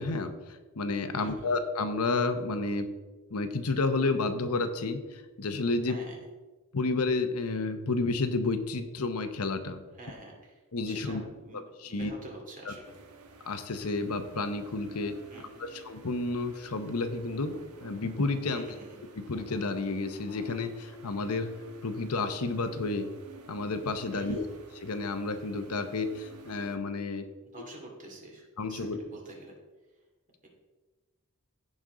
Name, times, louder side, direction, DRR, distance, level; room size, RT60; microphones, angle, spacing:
voice 1, 0.0-2.9 3.3-6.0 6.7-9.8 10.7-11.2 11.8-12.1 12.7-12.8 13.4-15.1 15.6-18.7 19.2-21.5 21.8-23.1 23.5-24.4 24.8-27.3 28.6-29.0, left 3 dB, 85° left, 8 dB, 0.9 m, -31 dB
voice 2, 5.8-6.2 9.9-11.6 11.8-12.8 15.3-15.8 18.5-19.0 24.1-24.6 27.5-29.5 30.4-30.5, right 2 dB, 35° right, -1 dB, 2.4 m, -47 dB
sound 1, 12.8-26.8, right 3 dB, 85° right, 1.2 m, -51 dB
15.5 x 5.3 x 3.8 m, 1.2 s
head